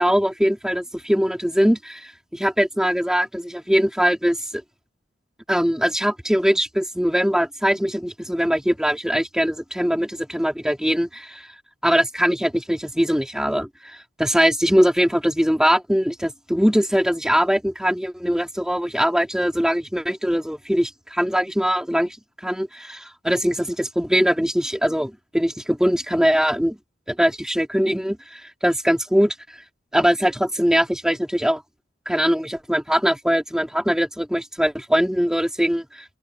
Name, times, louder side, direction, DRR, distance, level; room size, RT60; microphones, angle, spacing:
voice 1, 0.0-4.4 5.5-11.5 11.8-22.2 22.4-26.8 27.1-29.3 29.9-31.6 32.1-35.9, equal, 5° right, 3.9 m, -21 dB
open air
head